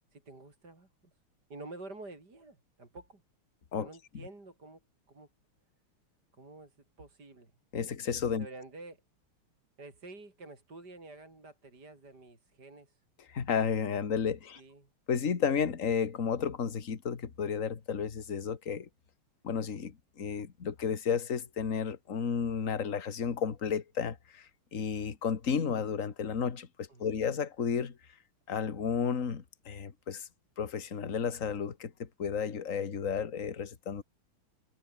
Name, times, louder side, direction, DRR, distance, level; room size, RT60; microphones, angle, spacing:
voice 1, 0.1-0.9 1.5-3.2 3.8-4.8 5.1-5.3 6.3-7.5 8.4-9.0 9.8-13.0 14.6-14.9 26.9-27.2, right 2 dB, 45° right, 5.8 m, -49 dB
voice 2, 7.7-8.5 13.3-14.6 15.1-18.9 19.4-28.0 28.5-30.3 30.6-34.0, left 6 dB, 40° left, 2.0 m, -32 dB
omnidirectional pair, 2.4 m